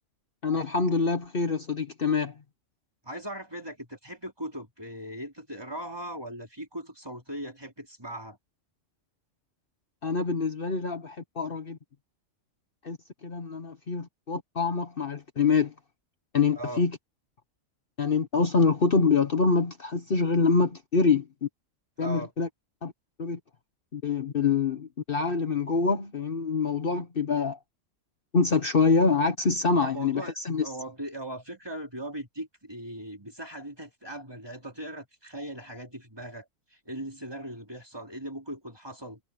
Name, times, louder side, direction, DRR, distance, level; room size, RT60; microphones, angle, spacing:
voice 1, 0.4-2.3 10.0-11.8 12.8-15.7 16.3-16.9 18.0-21.5 22.0-22.5 22.8-22.9 23.2-23.4 23.9-27.6 28.3-30.7, left 4 dB, 45° left, 1.3 m, -25 dB
voice 2, 3.0-8.4 16.6-16.8 22.0-22.3 29.8-39.2, right 1 dB, 20° right, 4.5 m, -39 dB
omnidirectional pair, 1.3 m